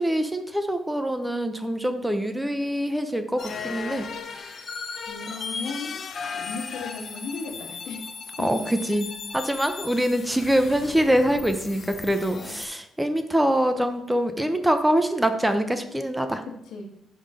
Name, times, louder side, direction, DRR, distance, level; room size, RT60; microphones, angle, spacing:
voice 1, 0.0-4.1 4.4-4.6 8.4-9.1 9.3-16.4, equal, 5° right, 8 dB, 0.5 m, -24 dB
sound 1, 3.4-12.7, left 5 dB, 50° left, 0.6 m, -36 dB
voice 2, 5.1-6.0 6.3-8.1 8.4-8.6 16.6-16.9, left 3 dB, 75° left, 1 dB, 1.4 m, -35 dB
5.5 x 3.7 x 5.0 m, 0.74 s
cardioid pair, 90°, 0 cm